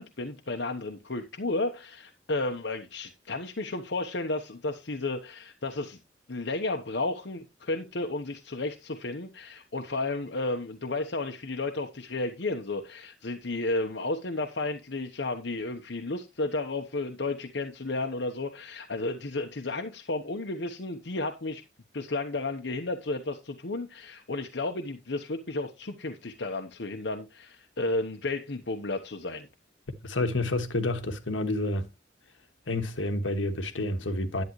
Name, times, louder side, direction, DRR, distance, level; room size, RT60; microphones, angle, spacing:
voice 1, 0.0-6.0 6.3-21.6 21.9-29.5, left 2 dB, 65° left, 1.0 m, -32 dB
voice 2, 30.0-31.9 32.7-34.4, left 2 dB, 85° left, 1.5 m, -29 dB
11.0 x 9.3 x 3.1 m
head